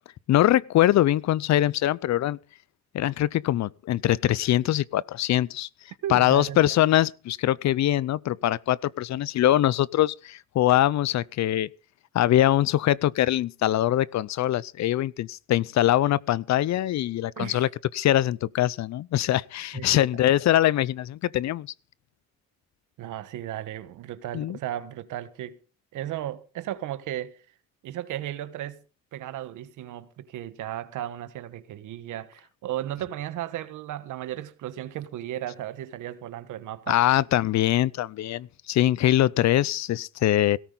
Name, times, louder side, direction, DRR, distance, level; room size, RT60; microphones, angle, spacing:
voice 1, 0.3-2.4 2.9-5.7 6.1-11.7 12.1-17.7 17.9-21.7 24.3-24.6 36.9-40.6, left 13 dB, 65° left, 0.6 m, -23 dB
voice 2, 6.0-6.8 17.4-17.7 19.7-20.0 23.0-25.6 25.9-27.4 27.8-28.8 29.1-37.0, right 12 dB, 85° right, 1.3 m, -35 dB
17.0 x 13.5 x 3.9 m
cardioid pair, 90°, 30 cm